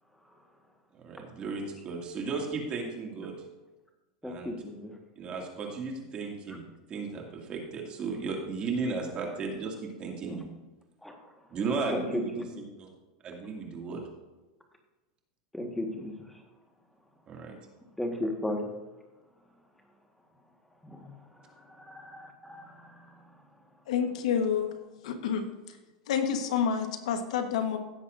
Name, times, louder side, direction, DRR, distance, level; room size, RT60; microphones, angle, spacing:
voice 1, 0.9-3.3 4.2-4.5 5.2-6.6 6.9-10.5 11.5-12.3 12.6-12.9 13.2-14.0 17.3-17.6, right 4 dB, 30° right, 0 dB, 2.3 m, -35 dB
voice 2, 4.2-4.9 10.3-10.4 11.0-11.3 11.9-12.4 15.5-16.4 18.0-18.7 20.8-23.2, left 1 dB, 5° left, 2 dB, 1.5 m, -36 dB
voice 3, 23.9-24.8 25.0-25.8 26.1-27.8, left 7 dB, 80° left, 6 dB, 1.3 m, -29 dB
16.0 x 7.3 x 2.6 m, 1.1 s
supercardioid pair, 140°, 4 cm